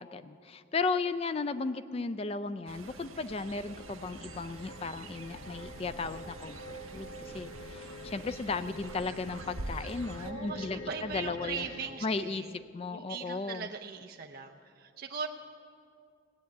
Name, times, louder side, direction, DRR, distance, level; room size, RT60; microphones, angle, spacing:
voice 1, 0.0-11.7 12.0-13.7, left 4 dB, 30° left, 13 dB, 0.3 m, -35 dB
Fowl, 2.7-10.3, right 2 dB, 85° right, 0.9 m, -46 dB
sound 1, 3.4-11.8, equal, 70° left, 1.6 m, -46 dB
voice 2, 10.2-12.5 12.9-15.3, right 6 dB, 45° right, 2 dB, 0.6 m, -40 dB
17.0 x 8.5 x 9.2 m, 2.4 s
head